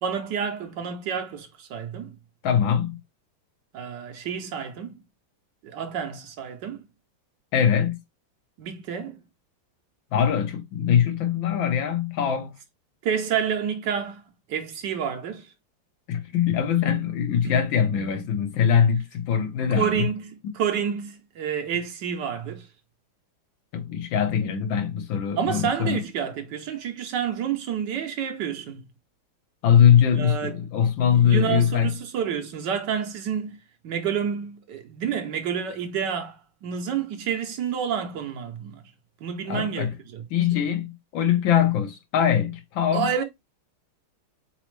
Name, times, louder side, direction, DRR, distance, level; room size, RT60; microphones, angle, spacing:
voice 1, 0.0-2.2 3.7-5.0 5.6-6.9 8.6-9.2 13.0-14.2 14.5-15.5 17.4-17.6 19.7-22.7 25.4-28.9 30.1-30.7 31.1-33.6 33.8-38.8 39.2-40.2 40.5-40.6 42.9-43.2, right 8 dB, 70° right, 1.2 m, -29 dB
voice 2, 2.4-3.0 7.5-8.0 10.1-12.5 16.1-20.1 23.7-26.0 29.6-31.9 39.5-39.9 40.3-43.1, left 8 dB, 75° left, 1.6 m, -22 dB
4.1 x 4.0 x 3.1 m
omnidirectional pair, 2.2 m